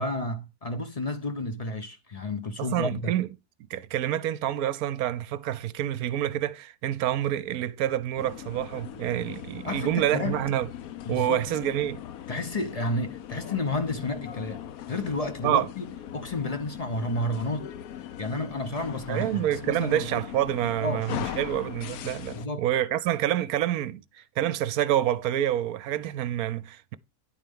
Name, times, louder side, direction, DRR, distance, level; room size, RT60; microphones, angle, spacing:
voice 1, 0.0-3.1 9.6-10.5 11.0-11.5 12.3-17.7 18.2-20.3 20.6-21.1 22.3-22.6, left 2 dB, 35° left, 0.7 m, -31 dB
voice 2, 2.6-3.3 3.7-10.7 11.1-12.0 15.4-15.7 19.1-26.9, right 12 dB, 70° right, 1.1 m, -27 dB
sound 1, 8.2-22.5, left 11 dB, 70° left, 1.1 m, -40 dB
10.5 x 4.4 x 5.3 m
omnidirectional pair, 1.7 m